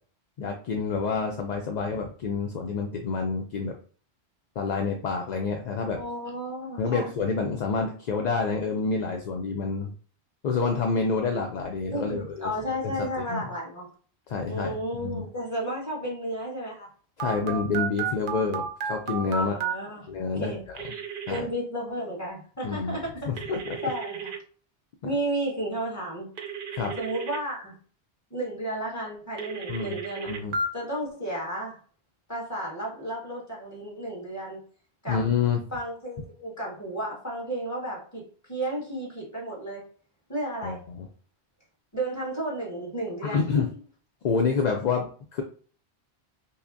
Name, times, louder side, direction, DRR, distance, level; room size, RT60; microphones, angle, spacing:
voice 1, 0.4-3.7 4.6-6.0 6.8-9.9 10.4-12.5 12.8-13.5 14.3-15.2 17.2-19.6 20.1-20.5 21.3-21.4 22.6-23.0 23.3-23.8 26.7-26.9 29.7-30.0 30.3-30.5 35.1-35.6 40.6-41.1 43.2-43.7 44.2-45.4, left 5 dB, 55° left, 2 dB, 0.5 m, -28 dB
voice 2, 5.9-7.1 11.9-13.9 14.5-16.9 19.4-20.1 20.4-20.6 21.3-23.5 23.8-24.3 25.0-26.3 27.0-27.8 28.3-30.3 30.7-31.7 32.3-34.6 35.0-35.2 35.7-39.8 40.3-40.8 41.9-43.7, right 1 dB, 15° left, -3 dB, 1.4 m, -33 dB
Telephone, 17.2-19.7 20.8-21.4 23.4-24.4 26.4-27.4 29.4-30.7, right 5 dB, 60° right, 0.7 m, -32 dB
5.6 x 2.1 x 2.5 m, 0.43 s
omnidirectional pair, 1.1 m